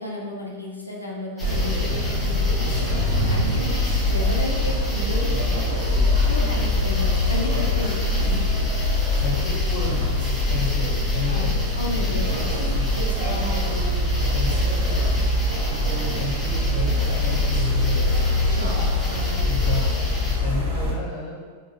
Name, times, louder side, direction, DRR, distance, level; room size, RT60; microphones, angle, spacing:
voice 1, 0.0-2.7 3.3-3.8 4.1-5.7 5.9-8.5 11.2-11.5 11.7-13.1 18.5-19.4, left 1 dB, 85° left, -3 dB, 0.6 m, -33 dB
sound 1, 1.4-20.4, equal, 5° left, 0.7 m, -36 dB
sound 2, 1.4-20.9, left 2 dB, 60° right, 0.7 m, -23 dB
voice 2, 3.3-3.7 9.2-11.9 12.7-15.2 15.7-18.5 19.4-21.5, left 1 dB, 30° left, -6 dB, 1.2 m, -33 dB
5.1 x 2.2 x 2.5 m, 1.4 s
figure-of-eight pair, 90°, 0 cm